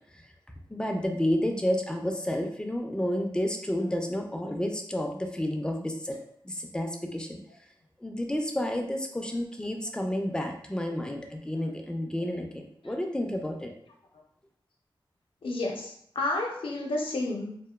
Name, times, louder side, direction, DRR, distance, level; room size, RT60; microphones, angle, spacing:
voice 1, 0.7-6.2 6.4-7.4 8.0-13.7, left 1 dB, 10° left, 3 dB, 0.3 m, -30 dB
voice 2, 15.4-17.6, left 2 dB, 85° left, -1 dB, 0.6 m, -31 dB
2.9 x 2.1 x 2.2 m, 0.68 s
wide cardioid pair, 100°, 9 cm